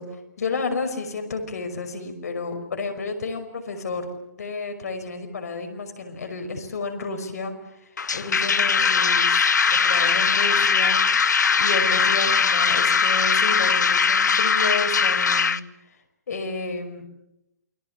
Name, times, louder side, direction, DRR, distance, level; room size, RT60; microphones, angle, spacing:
voice 1, 0.0-11.0 11.6-16.0 16.3-17.1, left 3 dB, 65° left, 6 dB, 5.5 m, -31 dB
sound 1, 8.0-15.6, left 5 dB, 90° left, 1.1 m, -20 dB
28.5 x 23.5 x 7.1 m, 0.87 s
hypercardioid pair, 160°, 9 cm